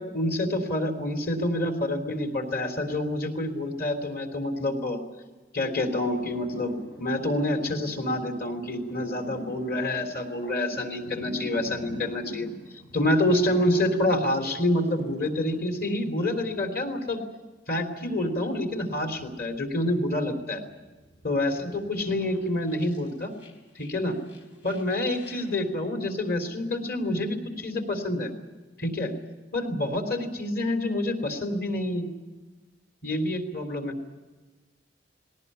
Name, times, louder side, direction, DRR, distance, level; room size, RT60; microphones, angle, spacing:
voice 1, 0.1-5.0 5.5-12.5 12.9-17.2 17.7-20.6 21.2-23.3 23.8-24.2 24.6-28.3 28.8-29.1 29.5-32.1 33.0-33.9, left 1 dB, 55° left, 6 dB, 3.5 m, -27 dB
sound 1, 6.1-15.7 16.1-16.7 18.7-20.4 20.7-25.6, left 1 dB, 90° left, 4.4 m, -44 dB
19.5 x 18.5 x 9.9 m, 1.3 s
head